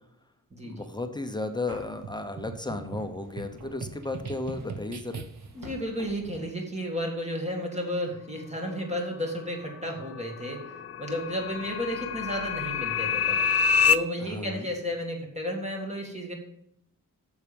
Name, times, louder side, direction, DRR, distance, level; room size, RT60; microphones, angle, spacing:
voice 1, 0.6-5.3 14.2-14.7, left 2 dB, 15° left, 6 dB, 0.8 m, -34 dB
sound 1, 1.1-1.2 1.7-6.6, right 1 dB, 80° right, 2.7 m, -49 dB
sound 2, 2.0-5.7, right 5 dB, 55° right, 0.9 m, -41 dB
voice 2, 5.6-13.4 13.9-16.3, equal, 20° right, 1 dB, 2.0 m, -33 dB
sound 3, 9.6-14.0, left 6 dB, 45° left, 0.5 m, -27 dB
9.4 x 7.3 x 5.3 m, 0.74 s
wide cardioid pair, 180°, 33 cm